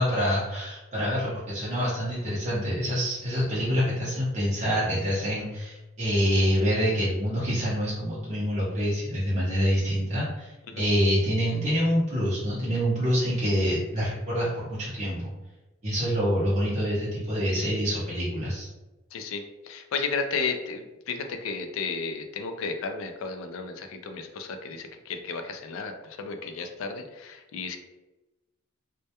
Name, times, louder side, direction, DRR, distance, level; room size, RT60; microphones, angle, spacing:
voice 1, 0.0-15.3 15.8-18.7, equal, 35° right, -9 dB, 0.6 m, -26 dB
voice 2, 19.1-27.8, left 4 dB, 75° left, 6 dB, 0.3 m, -33 dB
2.2 x 2.1 x 2.8 m, 1.1 s
head